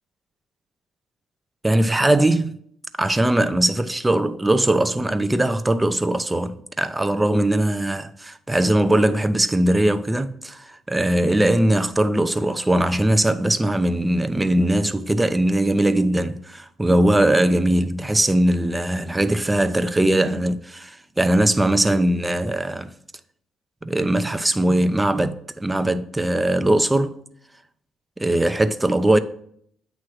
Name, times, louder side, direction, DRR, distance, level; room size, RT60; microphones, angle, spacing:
voice 1, 1.6-2.5 3.0-22.9 23.8-27.2 28.2-29.2, right 1 dB, 15° right, 0.6 m, -20 dB
8.5 x 3.1 x 6.2 m
supercardioid pair, 70°, 0 cm